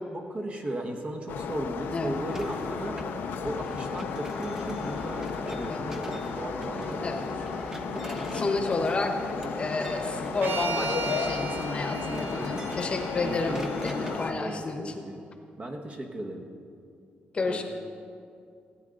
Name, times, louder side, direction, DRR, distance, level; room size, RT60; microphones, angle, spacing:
voice 1, 0.1-3.0 3.4-7.2 12.1-12.5 13.2-13.7 14.0-15.2 15.6-16.4 17.4-17.6, right 1 dB, 35° right, 3 dB, 1.3 m, -36 dB
sound 1, 1.3-14.3, left 7 dB, 85° left, 0.6 m, -35 dB
voice 2, 1.9-2.2 5.7-6.0 7.0-7.3 8.0-9.2 9.6-14.9 17.3-17.6, left 3 dB, 35° left, 5 dB, 1.0 m, -31 dB
sound 2, 2.3-14.3, right 1 dB, 15° right, 0.8 m, -39 dB
sound 3, 10.4-14.6, right 4 dB, 70° right, 0.9 m, -38 dB
16.5 x 9.0 x 3.9 m, 2.4 s
cardioid pair, 110°, 3 cm